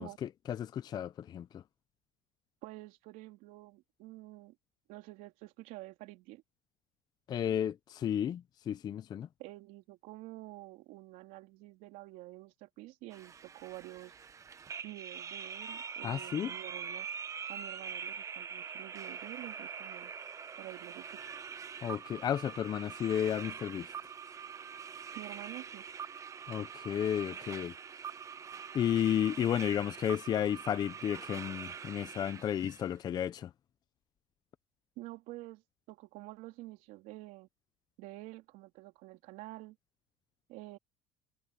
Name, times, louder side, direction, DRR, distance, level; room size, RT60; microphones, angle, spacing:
voice 1, 0.0-1.6 7.3-9.3 16.0-16.5 21.8-23.9 26.5-27.7 28.7-33.5, left 10 dB, 30° left, 0.5 m, -33 dB
voice 2, 2.6-4.6 4.9-6.4 9.4-14.1 14.8-17.1 17.5-20.1 20.6-21.3 25.1-25.8 35.0-35.6 35.9-37.5 38.0-39.8 40.5-40.8, right 19 dB, 65° right, 3.1 m, -48 dB
sound 1, 13.1-32.9, right 6 dB, 20° right, 0.7 m, -44 dB
cardioid pair, 150°, 15 cm